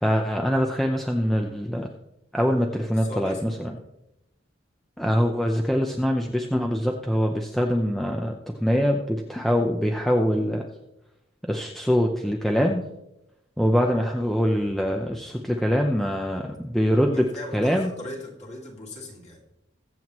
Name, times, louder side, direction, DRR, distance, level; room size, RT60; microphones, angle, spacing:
voice 1, 0.0-1.9 2.3-3.8 5.0-8.3 8.6-10.6 11.4-12.8 13.6-17.3 17.5-17.9, equal, ahead, 2 dB, 0.7 m, -23 dB
voice 2, 2.9-3.6 17.1-19.4, left 1 dB, 35° left, -1 dB, 2.5 m, -38 dB
22.0 x 7.8 x 3.1 m, 0.90 s
head